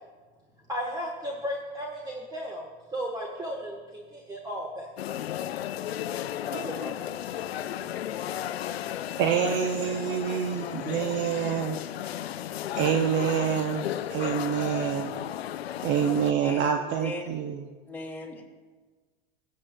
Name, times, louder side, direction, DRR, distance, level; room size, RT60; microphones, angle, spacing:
voice 1, 0.7-4.9 6.5-7.1, equal, 15° right, -1 dB, 1.2 m, -35 dB
sound 1, 5.0-16.3, left 11 dB, 90° left, 0.5 m, -34 dB
voice 2, 9.2-11.8 12.8-15.1 15.8-17.6, right 8 dB, 40° right, 5 dB, 0.7 m, -27 dB
voice 3, 16.4-17.2 17.9-18.4, left 2 dB, 5° left, -2 dB, 2.3 m, -38 dB
20.0 x 8.5 x 2.2 m, 1.4 s
hypercardioid pair, 105°, 30 cm